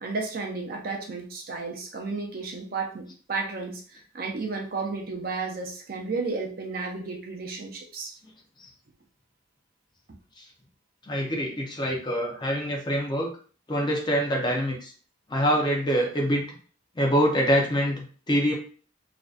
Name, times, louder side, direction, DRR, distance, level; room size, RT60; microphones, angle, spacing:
voice 1, 0.0-8.1, right 4 dB, 50° right, 1 dB, 0.5 m, -33 dB
voice 2, 11.1-13.3 13.7-14.9 15.3-16.5 17.0-18.5, equal, 20° left, 0 dB, 0.5 m, -25 dB
2.5 x 2.2 x 2.4 m, 0.40 s
head